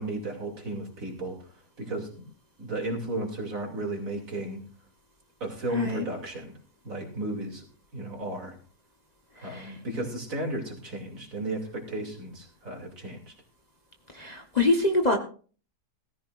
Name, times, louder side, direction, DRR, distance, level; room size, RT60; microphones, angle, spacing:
voice 1, 0.0-1.4 1.8-2.1 2.6-4.6 5.4-6.5 6.8-7.6 7.9-8.6 9.4-13.3, right 2 dB, 55° right, 2 dB, 3.2 m, -34 dB
voice 2, 5.7-6.0 9.4-9.7 14.1-15.2, left 2 dB, 30° left, 4 dB, 1.2 m, -25 dB
17.0 x 14.5 x 2.5 m, 0.40 s
omnidirectional pair, 1.7 m